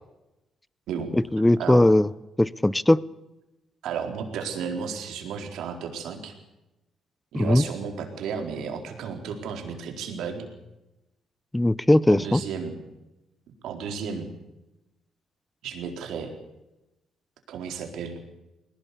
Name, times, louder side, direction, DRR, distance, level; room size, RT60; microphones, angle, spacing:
voice 1, 1.1-2.1 2.4-3.0 7.3-7.6 11.5-12.4, left 1 dB, 10° left, 20 dB, 0.7 m, -19 dB
voice 2, 3.8-6.3 7.3-10.5 12.1-12.8 13.6-14.3 15.6-16.3 17.5-18.2, right 6 dB, 80° right, 4 dB, 4.1 m, -33 dB
21.0 x 18.0 x 8.3 m, 0.96 s
cardioid pair, 90°, 0 cm